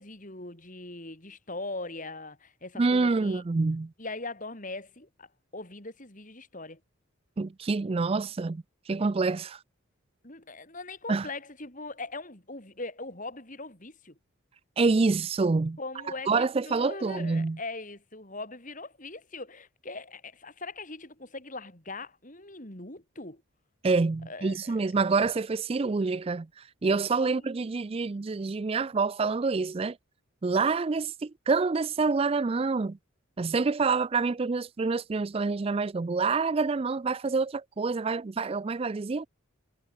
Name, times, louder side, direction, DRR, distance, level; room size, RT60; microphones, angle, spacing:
voice 1, 0.0-3.4 4.0-6.8 10.2-14.2 15.8-23.4 24.3-24.9 27.2-27.5, left 2 dB, 35° left, 3.8 m, -41 dB
voice 2, 2.8-3.9 7.4-9.6 11.1-11.3 14.8-15.8 16.3-17.6 23.8-30.0 30.4-33.0 33.4-39.3, right 4 dB, 25° right, 0.3 m, -27 dB
head